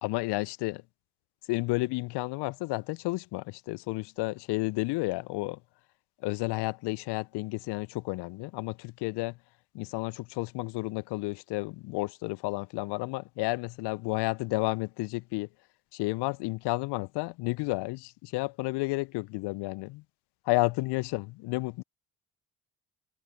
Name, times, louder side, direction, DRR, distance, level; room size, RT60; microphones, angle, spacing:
voice 1, 0.0-0.8 1.5-5.6 6.2-9.3 9.7-15.5 15.9-20.0 20.5-21.8, left 22 dB, 60° left, 1.2 m, -31 dB
figure-of-eight pair, 45°, 46 cm